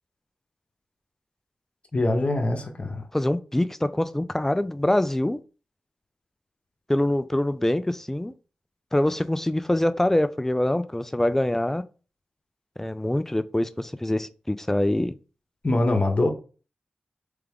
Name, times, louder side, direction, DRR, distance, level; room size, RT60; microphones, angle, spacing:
voice 1, 1.9-3.1 15.6-16.3, left 2 dB, 40° left, 0.9 m, -23 dB
voice 2, 3.1-5.4 6.9-8.3 8.9-11.8 12.8-15.1, left 1 dB, 10° left, 0.3 m, -24 dB
3.5 x 3.4 x 3.5 m
cardioid pair, 70°, 3 cm